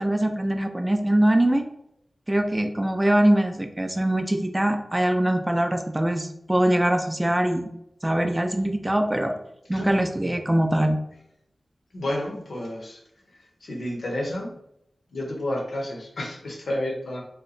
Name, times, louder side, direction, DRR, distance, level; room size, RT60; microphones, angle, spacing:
voice 1, 0.0-1.6 2.3-7.6 8.0-9.3 9.7-11.0, right 1 dB, 20° right, 6 dB, 0.5 m, -22 dB
voice 2, 11.9-13.0 13.6-14.5 15.1-17.2, left 1 dB, 80° left, -1 dB, 0.8 m, -30 dB
2.8 x 2.1 x 3.9 m, 0.77 s
cardioid pair, 50°, 0 cm